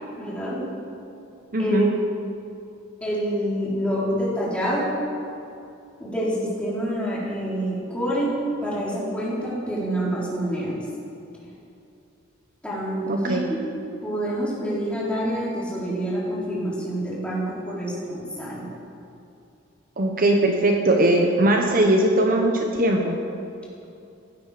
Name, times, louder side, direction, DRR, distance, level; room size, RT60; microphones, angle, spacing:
voice 1, 0.2-0.7 1.6-2.0 3.0-4.9 6.0-10.8 12.6-13.6 14.0-18.7, right 1 dB, 5° left, -7 dB, 3.9 m, -27 dB
voice 2, 1.5-1.9 13.1-13.4 20.0-23.1, right 1 dB, 45° right, 2 dB, 1.0 m, -20 dB
15.5 x 11.5 x 5.1 m, 2.7 s
head